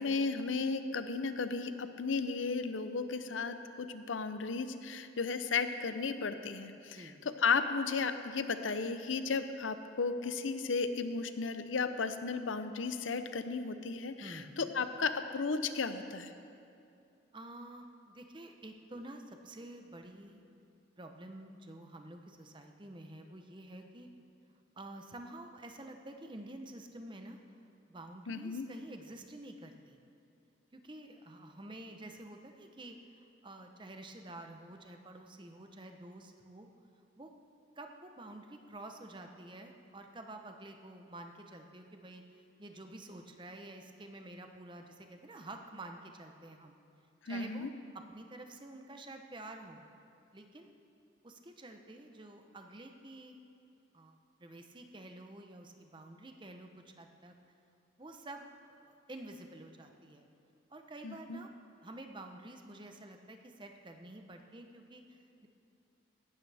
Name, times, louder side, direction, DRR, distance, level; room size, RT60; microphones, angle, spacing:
voice 1, 0.0-7.1 7.4-16.3 28.3-28.7 47.2-47.7 61.0-61.4, left 4 dB, 90° left, 10 dB, 0.7 m, -34 dB
voice 2, 6.9-7.3 14.2-14.8 17.3-20.5 21.0-24.1 24.7-27.4 27.9-30.0 30.7-36.7 37.2-37.3 37.8-42.2 42.6-46.8 47.2-47.7 47.9-49.8 50.3-50.7 51.2-53.4 53.9-57.3 58.0-58.4 58.7-60.3 60.7-61.5 61.8-65.5, right 1 dB, 25° right, 4 dB, 0.8 m, -49 dB
17.0 x 12.5 x 3.5 m, 2.5 s
head